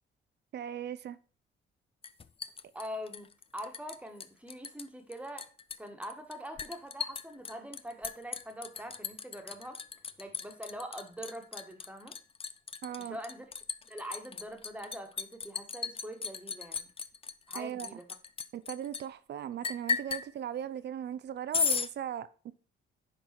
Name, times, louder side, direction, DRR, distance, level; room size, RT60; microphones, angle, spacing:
voice 1, 0.5-1.2 12.8-13.2 17.5-18.0 18.5-22.5, right 10 dB, 60° right, 0.6 m, -38 dB
Liquid, 2.0-4.0 4.2-4.9 5.1-19.0 19.6-20.3 21.5-21.9, left 5 dB, 30° left, 0.5 m, -36 dB
voice 2, 2.7-3.3 3.5-5.5 5.8-9.8 10.2-12.2 13.0-13.5 13.9-16.9 17.5-18.0, equal, 5° right, 1.6 m, -43 dB
10.0 x 4.0 x 4.4 m
cardioid pair, 90°, 20 cm